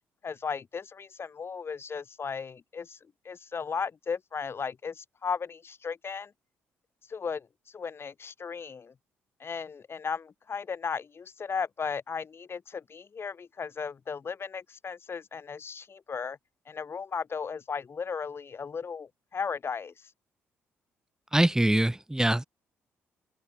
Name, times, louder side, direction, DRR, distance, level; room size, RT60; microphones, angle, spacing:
voice 1, 0.2-3.0 3.2-6.3 7.1-7.5 7.7-8.9 9.4-16.4 16.7-19.9, left 6 dB, 40° left, 4.3 m, -35 dB
voice 2, 21.3-22.4, right 1 dB, 10° right, 3.5 m, -23 dB
open air
figure-of-eight pair, 45°, 6 cm